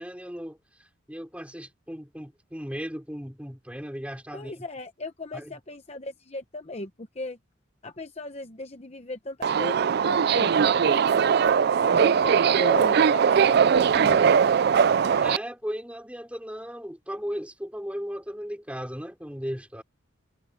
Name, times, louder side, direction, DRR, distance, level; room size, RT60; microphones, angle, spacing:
voice 1, 0.0-4.7 5.3-5.6 15.2-19.8, equal, 5° right, 4.7 m, -36 dB
voice 2, 4.3-7.4 7.8-11.4 11.9-14.3, left 2 dB, 30° left, 0.9 m, -37 dB
Subway metro underground, 9.4-15.4, right 7 dB, 50° right, 0.3 m, -20 dB
head